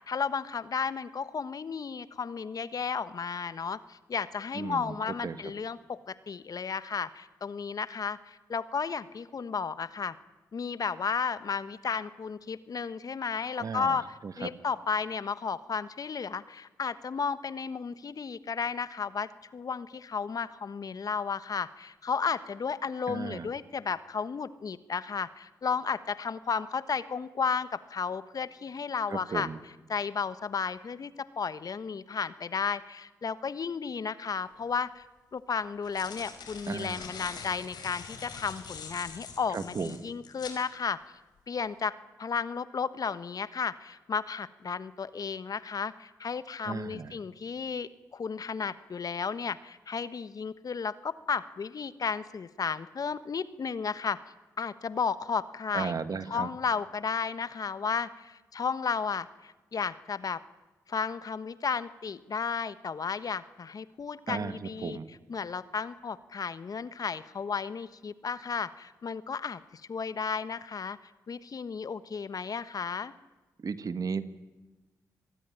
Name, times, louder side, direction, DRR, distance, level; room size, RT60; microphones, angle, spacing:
voice 1, 0.0-10.1 10.5-29.5 29.9-35.0 35.3-41.0 41.5-54.2 54.6-55.9 56.3-60.4 60.9-65.0 65.3-71.0 71.3-73.1, left 5 dB, 55° left, 14 dB, 1.2 m, -33 dB
voice 2, 4.5-5.0 5.2-5.4 13.6-14.0 14.2-14.5 23.1-23.5 29.1-29.6 36.7-37.1 39.5-40.0 46.6-47.1 55.7-56.5 64.3-65.1 73.6-74.2, right 5 dB, 50° right, 12 dB, 1.7 m, -35 dB
sound 1, 34.6-34.7 35.6-40.6, left 5 dB, 70° left, 5.1 m, -44 dB
26.0 x 21.0 x 10.0 m, 1.2 s
hypercardioid pair, 40°, 8 cm